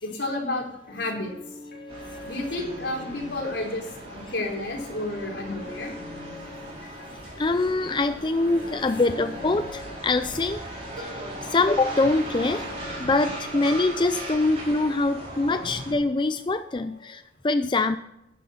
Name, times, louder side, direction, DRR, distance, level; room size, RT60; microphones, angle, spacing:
voice 1, 0.0-1.3 2.3-5.9 15.6-15.7, left 2 dB, 80° left, 0 dB, 3.8 m, -31 dB
sound 1, 0.7-17.2, left 1 dB, 55° left, 3.9 m, -43 dB
sound 2, 1.9-15.9, right 1 dB, 35° right, 4.0 m, -39 dB
voice 2, 7.4-10.6 11.0-12.7 13.0-18.0, left 3 dB, 25° left, 9 dB, 0.4 m, -24 dB
12.0 x 10.0 x 4.3 m, 0.84 s
head